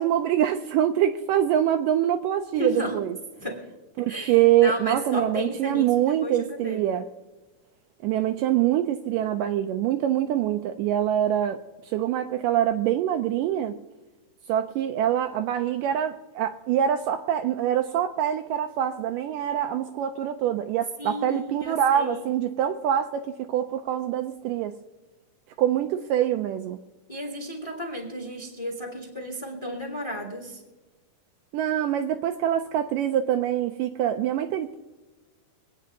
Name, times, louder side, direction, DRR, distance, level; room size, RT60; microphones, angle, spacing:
voice 1, 0.0-3.1 4.0-7.0 8.0-13.8 14.5-24.7 25.6-26.8 31.5-34.8, right 11 dB, 90° right, 7 dB, 1.9 m, -24 dB
voice 2, 2.5-3.0 3.4-3.6 4.1-4.3 4.6-5.9 6.2-6.8 21.0-22.3 27.1-30.6, equal, 10° left, 1 dB, 1.6 m, -33 dB
25.5 x 9.2 x 2.8 m, 1.2 s
omnidirectional pair, 4.3 m